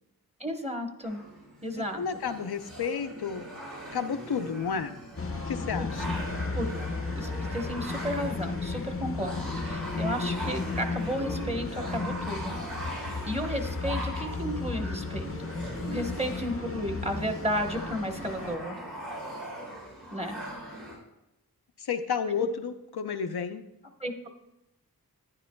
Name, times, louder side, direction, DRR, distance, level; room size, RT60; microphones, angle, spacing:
voice 1, 0.4-1.2 1.6-2.0 5.8-6.1 6.5-6.8 7.1-12.5 13.2-15.5 15.9-18.8 20.1-20.3 24.0-24.3, equal, 15° right, 4 dB, 1.1 m, -33 dB
sound 1, 1.0-20.9, right 1 dB, 90° right, 3.7 m, -40 dB
voice 2, 1.9-3.5 3.9-4.9 5.5-6.2 21.8-23.6, left 6 dB, 85° left, 7 dB, 0.6 m, -31 dB
sound 2, 5.2-18.6, left 4 dB, 35° left, 0.6 m, -34 dB
11.0 x 10.0 x 2.2 m, 0.88 s
wide cardioid pair, 55°, 38 cm